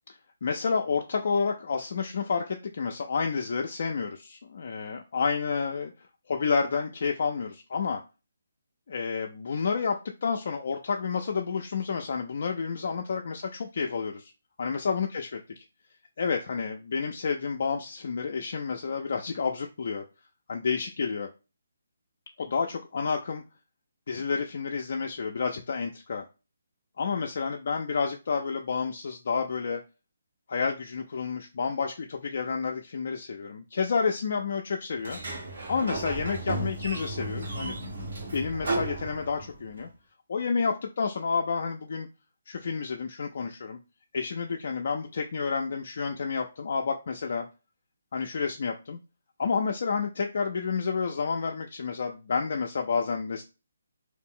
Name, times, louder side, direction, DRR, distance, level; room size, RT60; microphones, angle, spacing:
voice 1, 0.4-5.9 6.3-8.0 8.9-14.3 14.6-15.4 16.2-20.0 20.5-21.3 22.4-23.4 24.1-26.2 27.0-29.8 30.5-35.2 35.7-37.9 38.3-39.9 40.3-42.1 42.5-43.8 44.1-47.5 48.1-49.0 49.4-53.4, left 5 dB, 55° left, 2 dB, 0.3 m, -30 dB
Sliding door, 35.0-39.7, right 2 dB, 70° right, 1.0 m, -34 dB
2.4 x 2.0 x 3.6 m, 0.30 s
hypercardioid pair, 165°, 0 cm